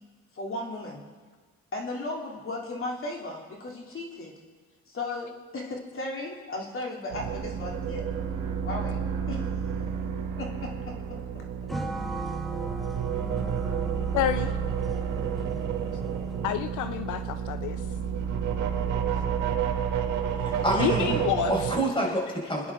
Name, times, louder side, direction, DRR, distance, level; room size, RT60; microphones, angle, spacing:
voice 1, 0.3-1.1 1.7-4.3 4.9-8.0 8.6-9.0 9.3-9.9 10.3-10.9, left 2 dB, 45° left, -1 dB, 2.9 m, -36 dB
sound 1, 7.1-21.8, right 7 dB, 85° right, 1.4 m, -30 dB
sound 2, 11.7-16.8, right 2 dB, ahead, 1.2 m, -38 dB
voice 2, 14.1-14.6 16.4-17.9 20.8-21.7, left 11 dB, 80° left, 10 dB, 0.6 m, -29 dB
voice 3, 20.4-21.2 21.5-22.7, right 1 dB, 15° left, -2 dB, 4.5 m, -27 dB
29.0 x 10.0 x 3.7 m, 1.4 s
cardioid pair, 90°, 30 cm